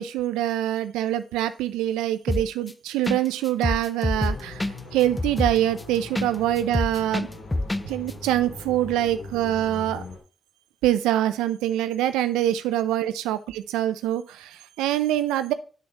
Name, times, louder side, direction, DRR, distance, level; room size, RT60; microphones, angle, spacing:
voice 1, 0.0-4.6 4.9-7.3 7.9-10.0 10.8-15.5, right 12 dB, 90° right, 12 dB, 0.5 m, -25 dB
sound 1, 2.3-2.7 3.1-3.2 3.5-6.3 6.6-7.8 8.1-8.2, left 2 dB, 20° left, 0.5 m, -26 dB
sound 2, 4.1-10.2, left 2 dB, 80° left, 2.3 m, -40 dB
8.7 x 6.9 x 3.0 m, 0.37 s
hypercardioid pair, 40°, 0 cm